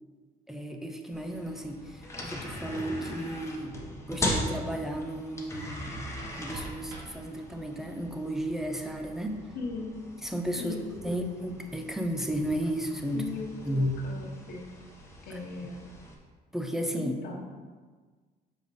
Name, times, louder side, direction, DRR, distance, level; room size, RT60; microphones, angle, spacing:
voice 1, 0.5-3.7 4.1-6.0 6.3-9.4 10.2-10.8 11.0-13.2 13.6-13.9 15.3-15.4 16.5-17.1, equal, ahead, 4 dB, 0.7 m, -33 dB
sound 1, 1.1-16.1, left 1 dB, 15° left, 1.3 m, -40 dB
sound 2, 5.7-7.8, right 1 dB, 90° right, 1.8 m, -47 dB
voice 2, 9.5-9.9 10.6-11.2 13.1-13.5 13.7-14.7 15.2-15.8 17.0-17.4, left 4 dB, 60° left, -2 dB, 1.3 m, -38 dB
6.7 x 4.9 x 4.2 m, 1.4 s
cardioid pair, 110°, 17 cm